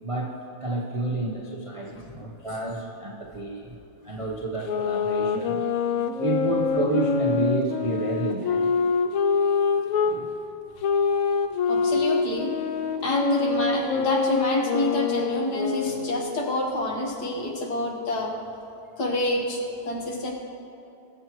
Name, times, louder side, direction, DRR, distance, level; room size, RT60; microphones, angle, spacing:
voice 1, 0.0-3.7 4.0-5.6 6.2-8.8 10.0-10.3, right 2 dB, 40° right, -2 dB, 0.4 m, -30 dB
voice 2, 1.9-2.3 11.7-12.5 13.0-18.3 19.0-20.3, left 1 dB, 55° left, -1 dB, 2.0 m, -27 dB
sound 1, 4.6-10.2 10.8-16.4, left 5 dB, 90° left, 0.7 m, -25 dB
20.0 x 7.3 x 3.1 m, 2.7 s
omnidirectional pair, 2.1 m